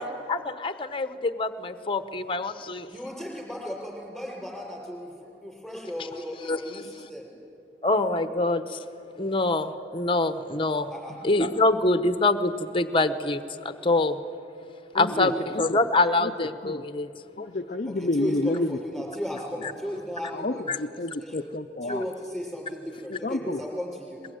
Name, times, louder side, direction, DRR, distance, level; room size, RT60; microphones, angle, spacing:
voice 1, 0.0-2.9 6.5-6.6 7.8-8.8 9.2-10.9 11.2-14.2 14.9-15.3 15.6-17.1 20.7-20.8, left 2 dB, 30° left, 10 dB, 1.0 m, -25 dB
voice 2, 2.9-5.1 5.4-7.3 10.9-11.2 15.0-15.5 17.8-20.9 21.2-21.4 21.8-24.2, equal, ahead, -2 dB, 5.9 m, -35 dB
voice 3, 15.0-15.3 15.5-15.6 16.2-16.3 16.6-16.8 17.4-18.7 20.4-20.5 20.8-22.0 23.2-23.6, left 2 dB, 45° left, 3 dB, 0.6 m, -29 dB
22.5 x 22.0 x 9.4 m, 2.6 s
head